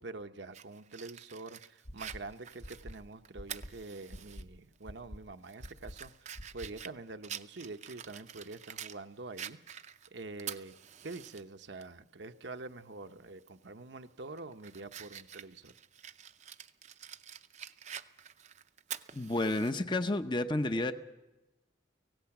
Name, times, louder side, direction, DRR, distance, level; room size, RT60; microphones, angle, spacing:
voice 1, 0.0-9.6 10.1-10.7 11.0-15.7, right 3 dB, 70° right, 8 dB, 0.9 m, -46 dB
Fire, 0.5-4.4 4.8-4.9 5.4-9.0 9.4-11.4 11.8-11.9 13.4-13.6 14.1-19.7, right 9 dB, 40° right, 0.6 m, -47 dB
sound 1, 1.8-2.2 2.6-2.9 3.3-3.7 4.1-4.4 4.8-5.2 5.6-5.9 6.3-6.7, equal, 55° left, 1.4 m, -45 dB
voice 2, 19.1-20.9, left 2 dB, 25° left, 9 dB, 0.7 m, -31 dB
24.5 x 17.5 x 6.0 m, 1.0 s
head